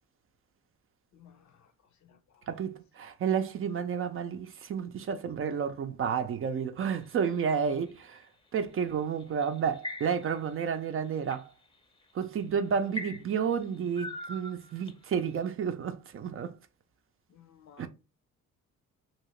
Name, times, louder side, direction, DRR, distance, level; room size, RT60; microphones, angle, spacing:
voice 1, 1.1-1.7 2.0-2.5 17.3-17.9, left 8 dB, 65° left, 0.7 m, -57 dB
voice 2, 2.5-8.2 8.5-11.5 12.1-16.5 17.8-17.9, right 7 dB, 45° right, 0.5 m, -31 dB
sound 1, 7.0-8.2 9.2-10.5 10.9-11.4 12.1-12.2 12.9-15.1, left 1 dB, 15° left, 0.6 m, -41 dB
2.9 x 2.8 x 3.1 m
cardioid pair, 90°, 30 cm